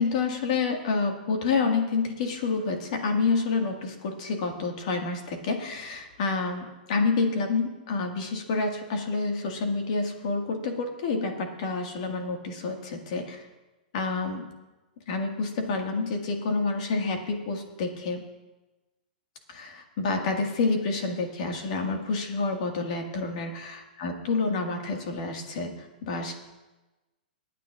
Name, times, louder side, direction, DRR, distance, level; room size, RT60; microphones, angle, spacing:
voice 1, 0.0-13.4 13.9-14.5 15.1-18.2 19.5-26.3, left 4 dB, 45° left, 3 dB, 1.8 m, -28 dB
26.0 x 9.3 x 2.5 m, 1.1 s
hypercardioid pair, 170°, 5 cm